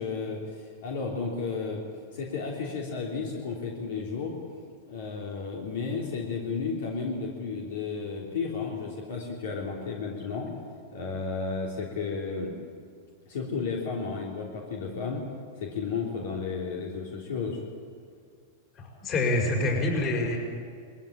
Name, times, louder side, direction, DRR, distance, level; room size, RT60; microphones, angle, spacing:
voice 1, 0.0-1.8 2.1-4.3 4.9-10.5 10.9-12.5 13.3-15.2 15.6-17.6, left 4 dB, 75° left, -1 dB, 3.4 m, -33 dB
voice 2, 18.8-20.4, left 2 dB, 35° left, 1 dB, 6.2 m, -26 dB
21.5 x 15.0 x 8.8 m, 2.2 s
hypercardioid pair, 130°, 0 cm